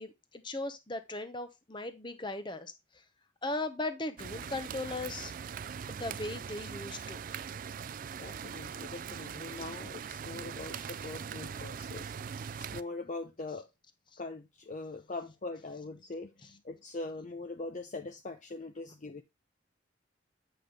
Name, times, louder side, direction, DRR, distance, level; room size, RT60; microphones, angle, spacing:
voice 1, 0.0-2.7 3.4-5.3 5.9-7.2 14.1-14.2, left 2 dB, 25° left, 0.9 m, -38 dB
sound 1, 4.2-12.8, right 7 dB, 45° right, 0.3 m, -41 dB
voice 2, 8.2-12.1 12.6-13.7 14.2-19.2, left 3 dB, 40° left, 0.6 m, -42 dB
8.5 x 5.6 x 3.4 m
head